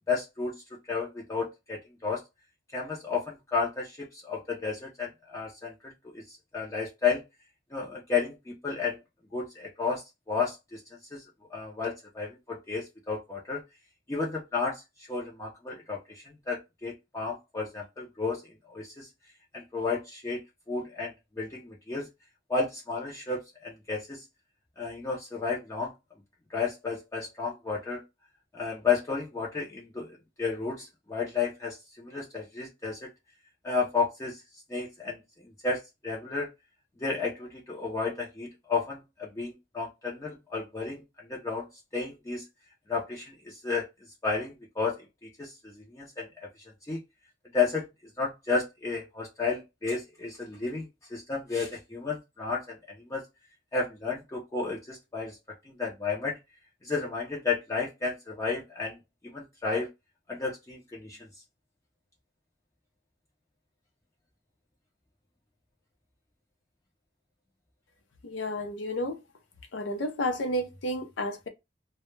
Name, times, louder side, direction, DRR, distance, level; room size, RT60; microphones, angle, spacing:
voice 1, 0.1-0.5 0.9-2.2 2.7-7.2 7.7-9.0 9.3-10.8 11.1-11.2 11.5-13.6 14.1-14.8 15.1-18.4 18.7-19.1 19.5-20.4 20.7-22.1 22.5-24.2 24.8-25.9 26.5-28.0 28.5-30.1 30.4-33.0 33.6-34.4 34.7-35.2 35.6-36.5 37.0-41.0 41.3-41.7 41.9-42.4 42.9-43.9 44.2-45.0 45.4-46.3 46.9-47.0 47.5-47.9 48.2-52.8 53.1-53.2 53.7-55.4 55.7-56.3 56.8-59.0 59.3-59.9 60.3-61.2, left 4 dB, 15° left, 0.4 m, -32 dB
voice 2, 68.2-69.2 69.7-71.5, left 1 dB, 90° left, 0.5 m, -31 dB
2.1 x 2.1 x 3.0 m
head